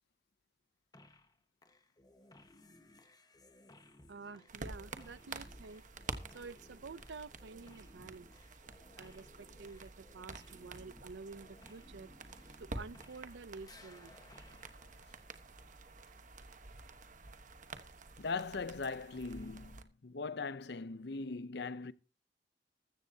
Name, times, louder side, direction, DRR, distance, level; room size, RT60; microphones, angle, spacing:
sound 1, 0.9-1.4 1.6-13.4 13.6-15.8, left 2 dB, 20° left, 1.3 m, -61 dB
voice 1, 4.1-5.8 6.3-8.3 9.0-12.1 12.6-14.2, right 4 dB, 85° right, 0.6 m, -50 dB
sound 2, 4.5-19.8, right 3 dB, 45° right, 1.2 m, -49 dB
voice 2, 18.2-21.9, left 4 dB, 65° left, 0.7 m, -40 dB
14.5 x 14.5 x 2.8 m
head